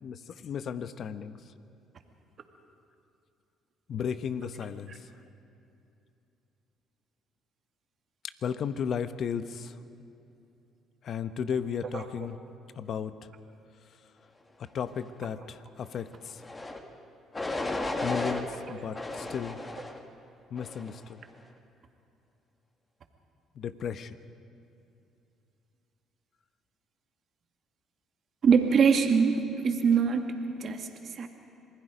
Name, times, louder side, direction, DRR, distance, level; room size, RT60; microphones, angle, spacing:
voice 1, 0.0-1.4 3.9-5.0 8.4-9.8 11.0-12.4 12.8-13.1 14.7-16.4 18.0-19.6 20.5-21.2 23.6-24.1, left 7 dB, 60° left, 12 dB, 1.0 m, -34 dB
sound 1, 16.4-16.8 17.3-18.4 18.9-20.0 20.6-21.0, left 2 dB, 25° left, 2.3 m, -34 dB
voice 2, 28.4-31.3, right 6 dB, 50° right, 4 dB, 2.1 m, -24 dB
27.0 x 20.0 x 5.1 m, 2.7 s
supercardioid pair, 70°, 0 cm